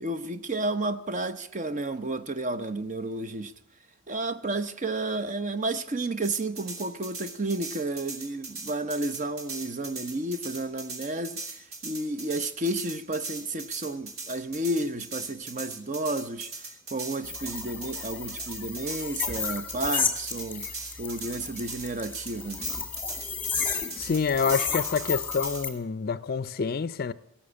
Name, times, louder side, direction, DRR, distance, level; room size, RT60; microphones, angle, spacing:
voice 1, 0.0-3.5 4.1-20.7 21.0-22.6, right 2 dB, 35° right, 0.7 m, -32 dB
sound 1, 6.2-25.6, right 3 dB, 75° right, 3.0 m, -40 dB
sound 2, 17.2-25.7, left 5 dB, 10° left, 1.6 m, -33 dB
voice 2, 24.0-27.1, left 5 dB, 45° left, 0.5 m, -27 dB
17.5 x 7.2 x 9.8 m
head